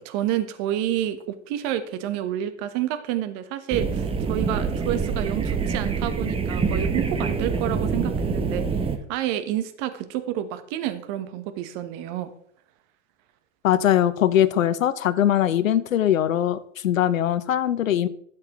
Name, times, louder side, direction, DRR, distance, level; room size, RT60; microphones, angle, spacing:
voice 1, 0.0-8.6 9.1-12.3, right 11 dB, 45° right, 11 dB, 1.2 m, -29 dB
sound 1, 3.7-9.0, right 5 dB, 15° right, 0.9 m, -26 dB
voice 2, 13.6-18.1, left 11 dB, 85° left, 15 dB, 0.7 m, -21 dB
12.5 x 7.7 x 3.1 m, 0.67 s
hypercardioid pair, 105°, 39 cm